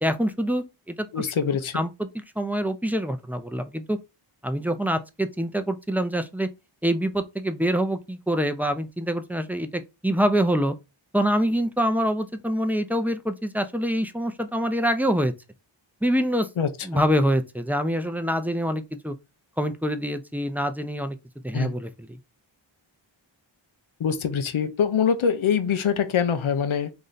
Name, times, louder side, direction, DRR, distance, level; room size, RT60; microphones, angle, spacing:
voice 1, 0.0-1.1 1.7-2.1 2.4-4.0 4.4-6.5 6.8-10.7 11.1-15.3 16.0-16.5 16.8-19.1 19.6-21.2 21.4-22.2, equal, 5° right, 0.4 m, -25 dB
voice 2, 1.1-1.8 16.6-17.0 21.5-21.7 24.0-26.9, left 7 dB, 90° left, 0.6 m, -24 dB
3.2 x 2.6 x 3.8 m
wide cardioid pair, 70°, 47 cm